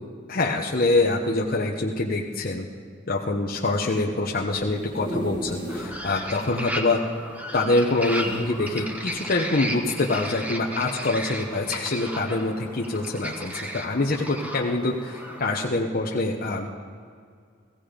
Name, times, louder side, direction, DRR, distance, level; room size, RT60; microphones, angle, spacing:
voice 1, 0.3-2.7 3.1-7.0 7.5-16.7, left 2 dB, 45° left, -1 dB, 0.9 m, -25 dB
sound 1, 4.5-6.1 6.5-6.6 6.8-6.9 8.0-9.0 9.6-9.8, equal, 25° right, 1.4 m, -34 dB
sound 2, 5.7-15.7, equal, 10° right, 1.1 m, -35 dB
16.0 x 16.0 x 5.1 m, 2.2 s
head